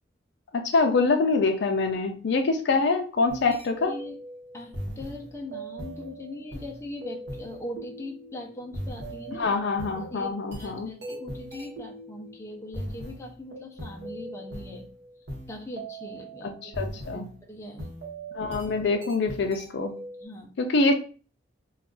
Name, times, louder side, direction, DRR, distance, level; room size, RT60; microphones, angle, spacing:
voice 1, 0.6-3.9 9.3-10.9 16.4-17.3 18.4-19.9 20.6-20.9, left 3 dB, 65° left, 6 dB, 0.4 m, -25 dB
sound 1, 3.3-17.4 17.8-20.3, right 1 dB, 60° right, 0.9 m, -40 dB
voice 2, 3.4-4.1 4.5-9.5 9.9-14.9 15.5-16.7 17.1-17.9 20.2-20.6, left 1 dB, 15° left, 0 dB, 0.5 m, -40 dB
2.4 x 2.3 x 3.6 m, 0.38 s
head